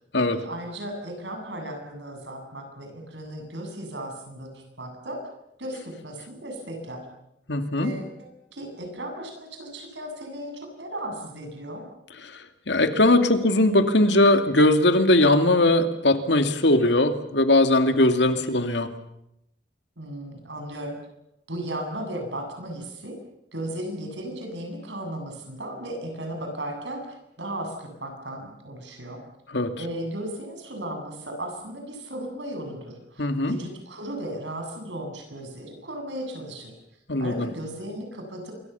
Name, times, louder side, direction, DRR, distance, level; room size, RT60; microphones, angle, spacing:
voice 1, 0.3-5.2 5.6-7.1 7.8-11.8 18.2-18.4 20.0-20.9 21.5-23.2 23.5-29.2 29.8-36.7 37.2-38.5, right 1 dB, 90° right, 4 dB, 7.9 m, -36 dB
voice 2, 7.5-7.9 12.7-18.9 29.5-29.7 33.2-33.6 37.1-37.5, left 1 dB, 80° left, 8 dB, 2.6 m, -20 dB
26.0 x 23.5 x 7.1 m, 0.81 s
head